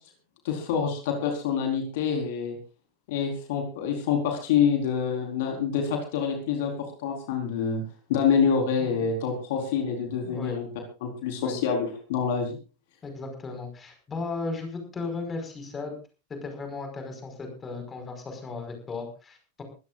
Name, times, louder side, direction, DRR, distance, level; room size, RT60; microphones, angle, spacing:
voice 1, 0.4-2.6 3.1-7.8 8.1-10.7 11.0-12.6, left 6 dB, 50° left, 3 dB, 4.3 m, -26 dB
voice 2, 10.2-10.6 11.4-11.6 13.0-15.9 16.3-19.6, left 3 dB, 20° left, 6 dB, 5.2 m, -36 dB
23.5 x 16.0 x 2.5 m, 0.33 s
figure-of-eight pair, 90°, 0 cm